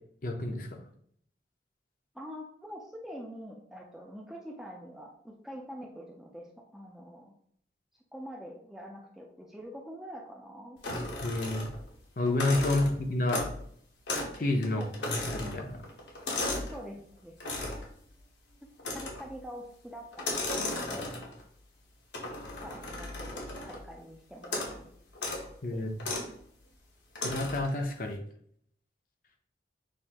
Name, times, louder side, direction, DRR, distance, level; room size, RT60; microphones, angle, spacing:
voice 1, 0.2-0.8 11.2-11.7 12.2-13.5 14.4-15.8 25.6-25.9 27.2-28.2, left 2 dB, 50° left, 3 dB, 0.6 m, -29 dB
voice 2, 2.1-6.5 6.7-7.3 8.1-10.8 12.6-12.7 14.7-14.9 16.7-17.3 18.9-21.2 22.6-24.9 25.7-25.8, equal, ahead, 0 dB, 0.4 m, -45 dB
sound 1, 10.8-11.9 12.3-13.7 14.1-14.4 14.6-16.8 17.4-17.9 18.8-19.3 20.1-21.4 22.1-23.9 24.4-24.8 25.1-25.5 26.0-26.3 27.2-27.7, left 2 dB, 85° left, 1.0 m, -35 dB
6.3 x 2.5 x 2.9 m, 0.65 s
head